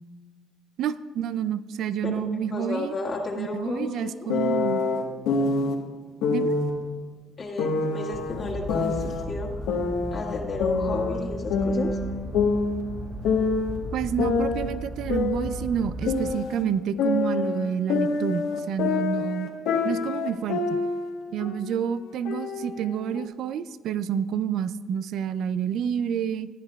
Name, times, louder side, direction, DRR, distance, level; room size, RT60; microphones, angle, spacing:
voice 1, 0.8-2.9 3.3-4.8 6.3-6.6 13.9-19.5 19.8-20.8 21.3-26.5, right 8 dB, 65° right, 15 dB, 0.4 m, -29 dB
voice 2, 2.5-4.3 7.4-9.7 10.1-12.0, left 3 dB, 45° left, -3 dB, 1.7 m, -32 dB
sound 1, 4.3-5.7 6.2-6.7 7.6-9.2 9.7-11.2 11.5-13.8 14.2-16.6 17.0-21.1 21.4-21.8 22.3-23.3, left 4 dB, 75° left, 1.2 m, -26 dB
sound 2, 8.1-16.3, equal, 10° left, 0.9 m, -36 dB
16.0 x 9.7 x 2.3 m, 1.4 s
hypercardioid pair, 60°, 0 cm